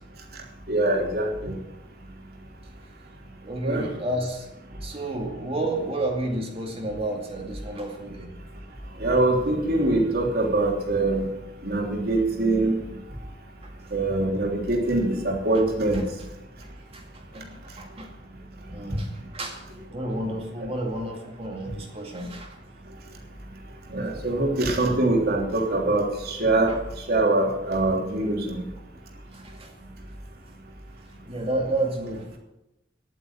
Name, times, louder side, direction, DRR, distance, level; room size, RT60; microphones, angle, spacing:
voice 1, 0.7-1.6 3.6-3.8 9.0-11.2 11.6-12.8 13.9-16.0 23.9-26.7 27.1-28.5, right 2 dB, 60° right, -1 dB, 3.3 m, -23 dB
voice 2, 3.4-4.5 4.8-8.3 13.6-13.7 15.9-16.0 16.9-17.0 17.3-18.1 18.7-22.6 29.3-29.7 31.2-32.4, right 1 dB, 35° right, 1 dB, 2.2 m, -31 dB
11.0 x 9.6 x 8.8 m, 0.93 s
head